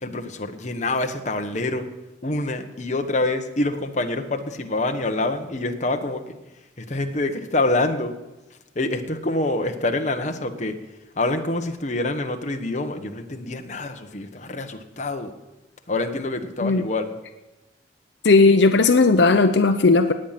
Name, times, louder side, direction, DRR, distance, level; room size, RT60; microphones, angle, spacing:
voice 1, 0.0-1.9 2.2-6.4 6.8-8.1 8.7-10.8 11.2-15.3 15.9-17.2, left 2 dB, 40° left, 5 dB, 1.2 m, -26 dB
voice 2, 18.2-20.1, left 3 dB, 75° left, 8 dB, 0.7 m, -16 dB
18.0 x 9.0 x 5.9 m, 1.1 s
head